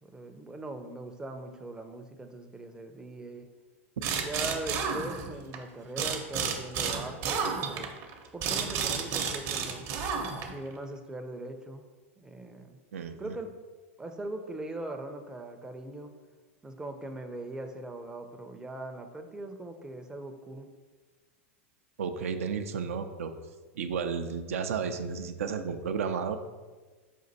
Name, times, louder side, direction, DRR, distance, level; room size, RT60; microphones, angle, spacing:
voice 1, 0.0-3.5 4.2-8.0 8.3-9.8 10.5-11.8 12.2-12.8 13.2-13.5 14.0-16.1 16.6-20.7, right 2 dB, 10° right, 5 dB, 0.4 m, -40 dB
sound 1, 4.0-5.6 6.0-10.7, right 6 dB, 45° right, 0.7 m, -31 dB
voice 2, 12.9-13.3 22.0-23.3 23.7-26.4, right 6 dB, 80° right, 7 dB, 0.4 m, -32 dB
5.2 x 2.5 x 4.0 m, 1.3 s
hypercardioid pair, 105°, 7 cm